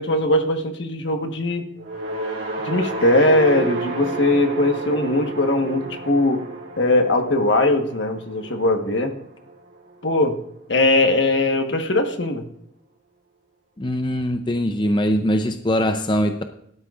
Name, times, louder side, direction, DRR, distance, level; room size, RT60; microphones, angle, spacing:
voice 1, 0.0-1.6 2.6-6.4 6.8-9.1 10.0-10.4 10.7-12.4, left 2 dB, 70° left, 1.3 m, -20 dB
sound 1, 1.8-10.1, right 2 dB, 90° right, 3.2 m, -31 dB
voice 2, 13.8-16.4, equal, 25° left, 0.5 m, -22 dB
17.5 x 12.0 x 2.5 m
head